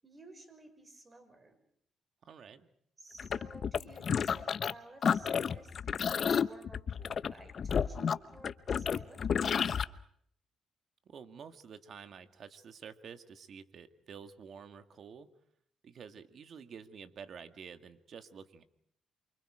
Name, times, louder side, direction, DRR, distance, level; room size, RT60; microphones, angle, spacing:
voice 1, 0.0-1.6 3.0-9.8, right 2 dB, 25° right, 8 dB, 5.8 m, -55 dB
voice 2, 2.2-2.7 11.1-15.3 15.8-18.7, right 6 dB, 60° right, 9 dB, 2.0 m, -50 dB
sound 1, 3.2-4.7 5.0-9.8, left 7 dB, 50° left, 0.9 m, -31 dB
28.5 x 25.5 x 5.1 m, 0.66 s
cardioid pair, 90°, 0 cm